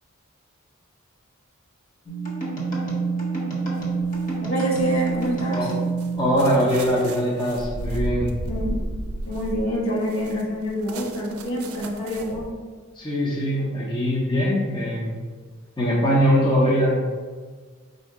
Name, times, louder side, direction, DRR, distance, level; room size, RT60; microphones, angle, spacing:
sound 1, 2.1-6.9, right 4 dB, 40° left, 1.1 m, -27 dB
sound 2, 3.8-4.3 4.8-12.5, right 1 dB, 80° right, 0.5 m, -33 dB
voice 1, 4.4-5.7 8.5-8.8 9.3-12.5, equal, 65° left, -3 dB, 1.2 m, -26 dB
voice 2, 6.2-8.3 13.0-15.2 15.8-17.2, equal, 20° left, -5 dB, 0.6 m, -22 dB
4.1 x 2.7 x 4.7 m, 1.5 s
head